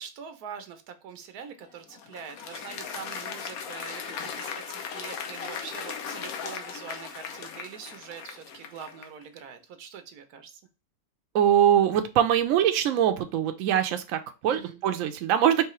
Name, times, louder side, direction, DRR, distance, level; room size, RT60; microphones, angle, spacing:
voice 1, 0.0-10.6 14.5-14.8, right 7 dB, 90° right, 8 dB, 1.2 m, -43 dB
Applause, 1.6-9.2, left 6 dB, 75° left, 1.1 m, -38 dB
voice 2, 11.3-15.6, right 10 dB, 70° right, 7 dB, 0.9 m, -23 dB
4.7 x 3.0 x 3.1 m, 0.30 s
omnidirectional pair, 1.6 m